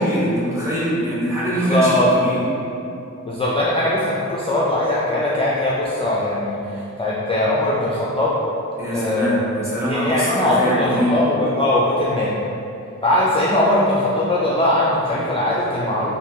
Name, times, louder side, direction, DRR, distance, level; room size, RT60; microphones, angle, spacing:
voice 1, 0.0-2.4 8.8-11.2, right 1 dB, 10° right, -10 dB, 1.1 m, -23 dB
voice 2, 1.5-2.1 3.2-8.3 8.9-9.4 9.9-12.3 13.0-16.1, left 1 dB, 20° left, -7 dB, 0.4 m, -20 dB
3.2 x 2.1 x 2.8 m, 2.7 s
cardioid pair, 55°, 30 cm